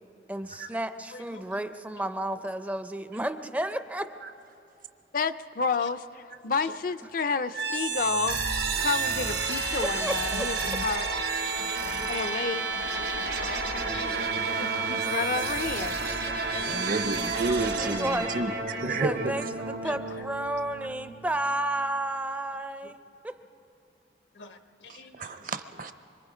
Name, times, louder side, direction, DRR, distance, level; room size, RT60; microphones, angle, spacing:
voice 1, 0.3-4.1 9.8-10.5 16.0-16.2 17.8-18.3 19.0-23.0 23.2-23.4, right 1 dB, 10° right, 10 dB, 0.5 m, -32 dB
voice 2, 1.1-1.5 2.0-2.1 6.6-6.7 8.8-9.1 10.2-10.4 11.8-12.4 12.9-15.2 16.5-16.8 17.5-17.6 18.3-18.4 19.8-20.2 24.3-25.5, left 4 dB, 85° left, 7 dB, 1.2 m, -45 dB
voice 3, 5.1-8.4 8.8-11.1 12.1-12.6 14.6-16.0, left 4 dB, 50° left, 12 dB, 0.4 m, -30 dB
sound 1, 7.5-21.4, right 4 dB, 85° right, 3.4 m, -30 dB
voice 4, 16.7-19.5 24.9-25.9, right 3 dB, 50° right, 11 dB, 0.7 m, -31 dB
25.5 x 24.0 x 5.0 m, 2.8 s
head